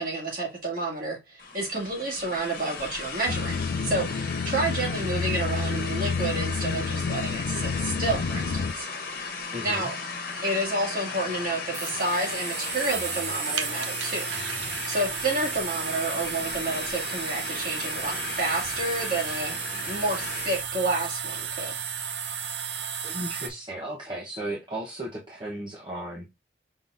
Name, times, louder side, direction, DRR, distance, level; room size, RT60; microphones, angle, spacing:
voice 1, 0.0-8.9 9.6-9.9 10.4-14.3 14.6-21.7, right 2 dB, 50° right, 1.9 m, -30 dB
sound 1, 1.4-20.7, left 4 dB, 50° left, 1.3 m, -36 dB
sound 2, 3.3-8.7, left 4 dB, 80° left, 0.4 m, -29 dB
voice 2, 9.5-9.9 23.0-26.3, right 1 dB, 25° right, 0.9 m, -35 dB
sound 3, 11.1-23.5, right 7 dB, 75° right, 0.7 m, -33 dB
5.5 x 3.8 x 2.5 m
head